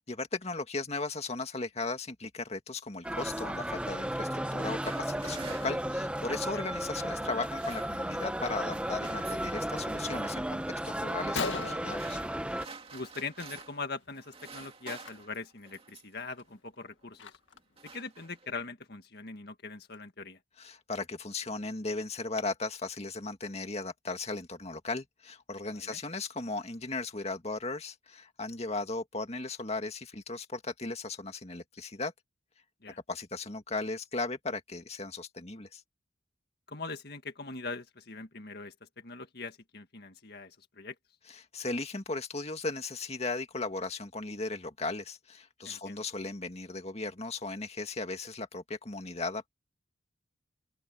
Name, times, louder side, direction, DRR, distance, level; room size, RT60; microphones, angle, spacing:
voice 1, 0.1-12.2 20.6-32.1 33.1-35.8 41.3-49.5, left 3 dB, 35° left, 2.1 m, -37 dB
sound 1, 3.0-12.7, right 1 dB, 5° right, 1.2 m, -34 dB
sound 2, 4.6-6.6 7.3-8.3 8.6-9.5 9.9-10.3 11.0-13.9 14.1-16.2 17.0-17.2 17.5-18.6, right 5 dB, 30° right, 2.4 m, -50 dB
Gunshot gunfire, 11.4-13.0 13.3-13.6 13.9-14.1 14.9-15.1 15.6-15.7 16.2-17.8, left 4 dB, 85° left, 1.9 m, -39 dB
voice 2, 12.9-17.3 17.9-20.4 25.7-26.0 32.8-33.0 36.7-40.9 45.7-46.0, left 4 dB, 55° left, 1.9 m, -42 dB
open air
head